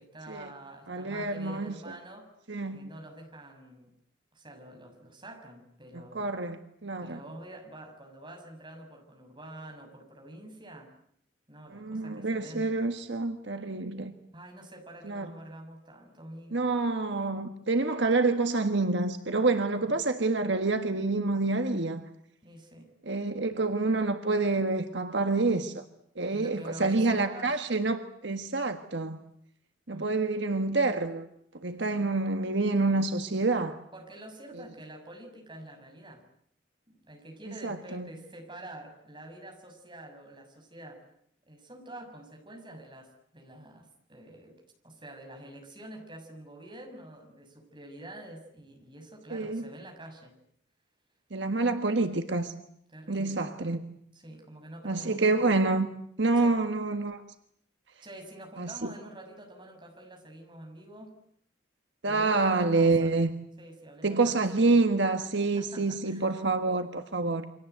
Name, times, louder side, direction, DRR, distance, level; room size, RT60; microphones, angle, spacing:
voice 1, 0.0-2.3 2.7-3.9 4.3-6.3 7.0-10.9 11.5-12.8 14.3-16.7 19.8-20.0 22.4-22.9 26.3-27.8 29.9-30.1 31.8-31.9 33.9-36.2 36.9-41.0 41.5-50.3 52.9-53.5 54.1-55.4 56.4-56.6 58.0-61.1 62.0-63.1 63.6-64.8 65.6-66.4 67.2-67.4, right 1 dB, 25° right, 6.4 m, -47 dB
voice 2, 0.9-1.7 2.5-2.9 6.1-7.2 11.7-14.1 15.0-15.3 16.5-22.0 23.1-25.8 26.2-29.2 29.9-31.3 31.6-33.8 37.6-38.1 49.3-49.6 51.3-52.5 53.1-53.8 54.8-55.9 56.2-57.2 58.6-58.9 62.0-63.3 64.0-67.4, right 3 dB, 70° right, 1.5 m, -27 dB
29.0 x 25.0 x 8.1 m
head